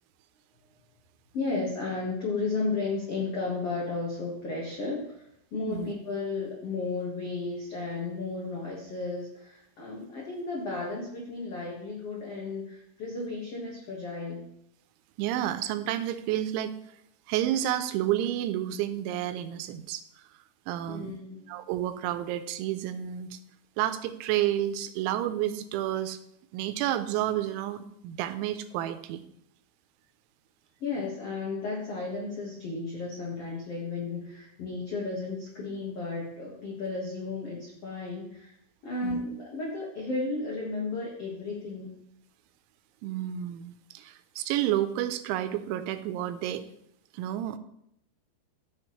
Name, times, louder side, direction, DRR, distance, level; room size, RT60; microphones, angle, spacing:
voice 1, 1.3-5.2 5.5-14.4 20.9-21.5 30.8-38.5 38.8-41.9, left 3 dB, 80° left, -3 dB, 1.3 m, -33 dB
voice 2, 15.2-16.7 17.3-20.0 20.7-21.2 21.5-23.4 23.8-26.2 26.5-29.2 39.0-39.2 43.0-46.6 47.1-47.6, right 12 dB, 85° right, 11 dB, 3.0 m, -30 dB
14.5 x 6.5 x 3.1 m, 0.75 s
omnidirectional pair, 5.4 m